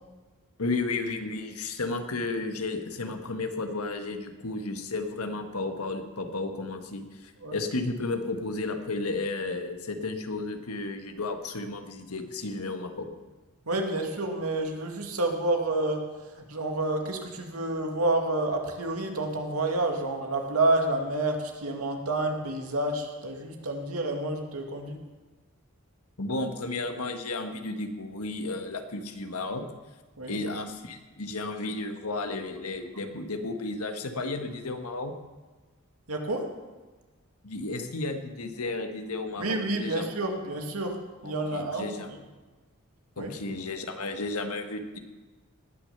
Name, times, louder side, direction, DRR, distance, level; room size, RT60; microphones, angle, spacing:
voice 1, 0.6-13.1 26.2-29.6 30.2-35.1 37.4-40.1 41.2-42.1 43.2-45.0, left 3 dB, 90° left, 6 dB, 1.5 m, -33 dB
voice 2, 13.7-16.1 16.5-25.0 30.2-30.4 36.1-36.5 39.4-41.0 41.2-41.9 43.2-43.3, right 2 dB, 85° right, 3 dB, 2.1 m, -29 dB
19.0 x 6.6 x 6.8 m, 1.3 s
head